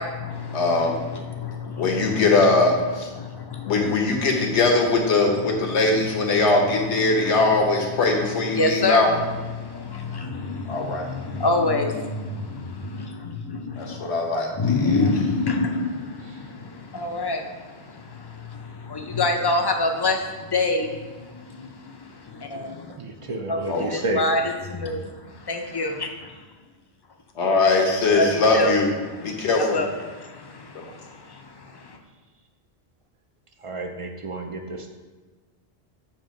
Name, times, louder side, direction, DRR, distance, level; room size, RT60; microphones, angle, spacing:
voice 1, 0.0-2.2 3.2-3.9 5.4-5.5 7.1-7.3 8.5-9.1 9.5-14.1 14.5-24.4 24.7-25.1 25.5-25.9 28.1-28.7 29.3-32.0, left 2 dB, 40° left, 3 dB, 0.3 m, -27 dB
voice 2, 0.5-1.0 1.8-3.1 3.6-9.1 10.7-11.1 13.8-14.5 23.7-23.9 27.4-28.9 29.2-29.8 30.7-30.8, left 3 dB, 85° left, 0 dB, 1.2 m, -21 dB
voice 3, 23.0-24.2 30.9-31.0 33.6-34.9, right 2 dB, 55° right, 4 dB, 0.3 m, -31 dB
7.3 x 2.7 x 5.1 m, 1.3 s
omnidirectional pair, 1.1 m